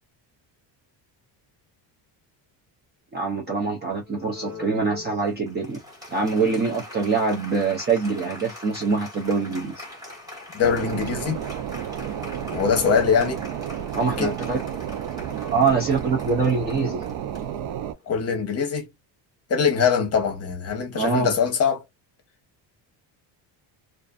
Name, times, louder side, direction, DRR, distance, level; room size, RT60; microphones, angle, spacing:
voice 1, 3.1-5.8 6.1-9.8 13.9-14.6 15.5-17.0 20.9-21.3, right 4 dB, 25° right, 0.4 m, -24 dB
Applause, 4.0-18.1, left 2 dB, 10° right, 1.2 m, -42 dB
voice 2, 10.5-11.4 12.5-13.4 14.2-14.3 18.1-18.9 19.5-21.8, left 6 dB, 35° left, 0.9 m, -22 dB
sound 1, 10.6-17.9, right 9 dB, 75° right, 0.6 m, -32 dB
2.5 x 2.4 x 2.3 m
cardioid pair, 175°, 45 cm